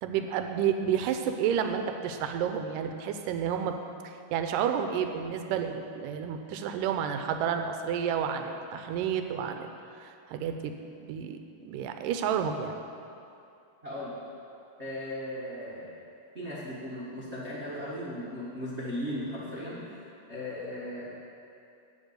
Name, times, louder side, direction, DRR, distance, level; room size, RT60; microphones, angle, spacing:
voice 1, 0.0-3.8 4.0-9.7 10.0-10.7 11.0-12.8, right 8 dB, 80° right, 6 dB, 2.1 m, -30 dB
voice 2, 13.8-14.2 14.8-15.9 16.3-20.0 20.3-21.1, left 1 dB, 40° right, -9 dB, 0.9 m, -37 dB
9.1 x 6.7 x 8.0 m, 2.6 s
omnidirectional pair, 4.2 m